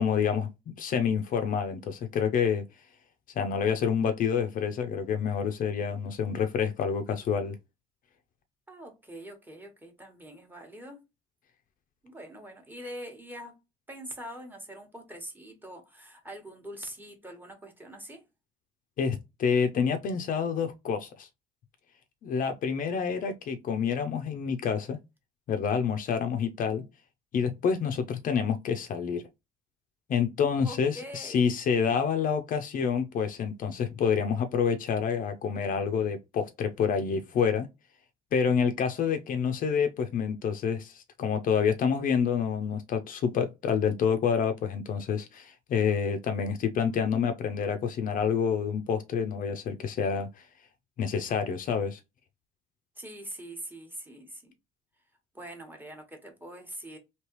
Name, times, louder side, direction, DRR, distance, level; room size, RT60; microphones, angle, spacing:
voice 1, 0.0-2.6 3.4-7.6 19.0-21.3 22.2-25.0 25.5-26.8 27.3-29.2 30.1-37.7 38.3-50.3 51.0-52.0, left 6 dB, 55° left, 0.5 m, -28 dB
voice 2, 8.7-11.0 12.0-13.6 13.9-18.2 30.6-31.5 53.0-54.5 55.3-57.0, equal, 10° right, 1.1 m, -43 dB
3.2 x 2.9 x 2.9 m
cardioid pair, 110°, 17 cm